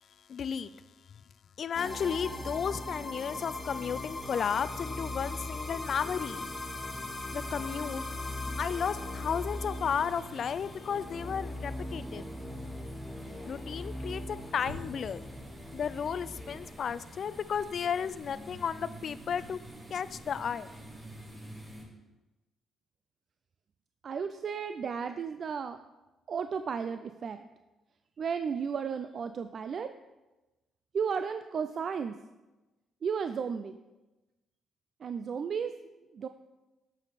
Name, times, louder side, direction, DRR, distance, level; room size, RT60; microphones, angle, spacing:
voice 1, 0.3-0.7 1.6-6.5 7.3-8.0 8.6-12.3 13.5-15.2 15.7-19.6 19.9-20.7, left 7 dB, 55° left, 15 dB, 0.3 m, -33 dB
sound 1, 1.7-16.9, left 1 dB, 15° left, 1.4 m, -39 dB
sound 2, 3.8-21.8, right 1 dB, 20° right, 3.0 m, -49 dB
sound 3, 14.5-15.3 17.0-17.1 17.6-17.7 18.4-22.0, equal, 75° right, 3.2 m, -49 dB
voice 2, 24.0-25.8 26.3-27.5 28.2-29.9 30.9-32.2 33.0-33.8 35.0-35.7 36.1-36.3, right 6 dB, 50° right, 9 dB, 0.3 m, -34 dB
8.4 x 7.4 x 4.1 m, 1.1 s
cardioid pair, 90°, 0 cm